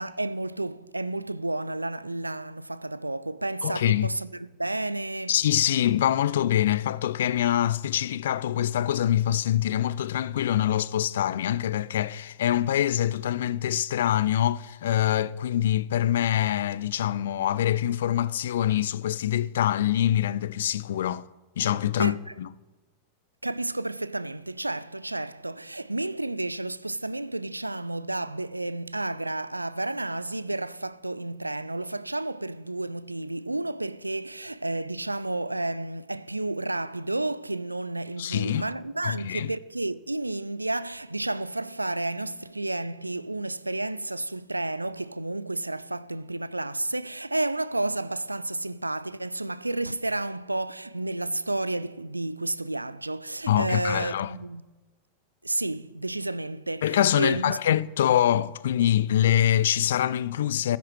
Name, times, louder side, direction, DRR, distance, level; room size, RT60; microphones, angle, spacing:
voice 1, 0.0-5.3 22.0-22.3 23.4-54.6 55.4-57.6, right 2 dB, 85° right, 0.4 m, -31 dB
voice 2, 3.6-4.1 5.3-21.2 21.6-22.5 38.2-38.6 39.0-39.5 53.5-54.3 56.8-60.8, left 11 dB, 60° left, 0.4 m, -24 dB
24.0 x 10.5 x 3.2 m
figure-of-eight pair, 90°, 0 cm